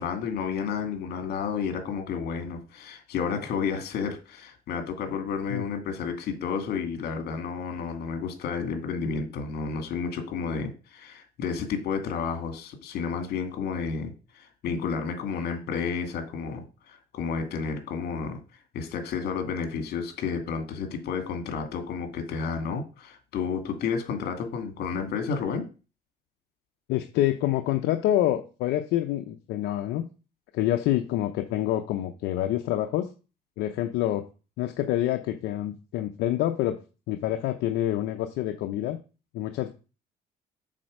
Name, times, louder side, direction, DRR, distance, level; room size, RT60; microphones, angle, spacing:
voice 1, 0.0-18.4 18.7-25.6, left 6 dB, 70° left, 6 dB, 2.4 m, -31 dB
voice 2, 26.9-30.0 30.5-33.1 33.6-34.2 34.6-36.8 37.1-39.0 39.3-39.7, left 13 dB, 85° left, 6 dB, 0.8 m, -27 dB
7.6 x 4.4 x 6.5 m, 0.34 s
cardioid pair, 110°, 17 cm